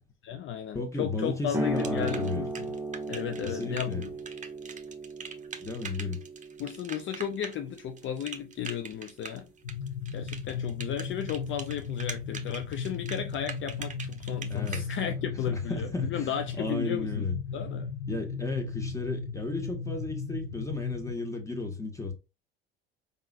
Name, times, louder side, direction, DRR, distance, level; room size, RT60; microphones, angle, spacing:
voice 1, 0.2-2.7 3.1-4.1 6.6-9.5 10.1-17.3 17.5-17.9, left 9 dB, 45° left, 0.6 m, -34 dB
voice 2, 0.7-2.4 3.4-4.1 5.6-6.2 14.5-17.4 18.1-22.1, left 3 dB, 10° left, 1.7 m, -34 dB
sound 1, 1.5-8.7, right 1 dB, 5° right, 1.4 m, -37 dB
sound 2, 1.8-14.9, right 5 dB, 25° right, 0.9 m, -42 dB
sound 3, 9.6-21.1, left 5 dB, 80° left, 0.7 m, -36 dB
5.3 x 3.8 x 2.5 m
hypercardioid pair, 60°, 29 cm